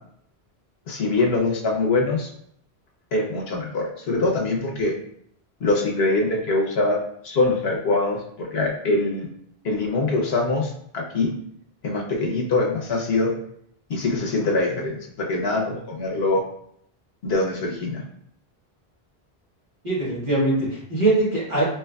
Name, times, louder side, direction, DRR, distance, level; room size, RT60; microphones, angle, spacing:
voice 1, 0.9-2.3 3.1-4.9 5.6-9.3 9.6-11.3 11.8-13.3 13.9-16.4 17.2-18.0, left 2 dB, 75° left, -1 dB, 1.1 m, -23 dB
voice 2, 19.8-21.6, right 2 dB, 50° right, -7 dB, 1.5 m, -22 dB
4.5 x 3.0 x 2.3 m, 0.69 s
omnidirectional pair, 1.1 m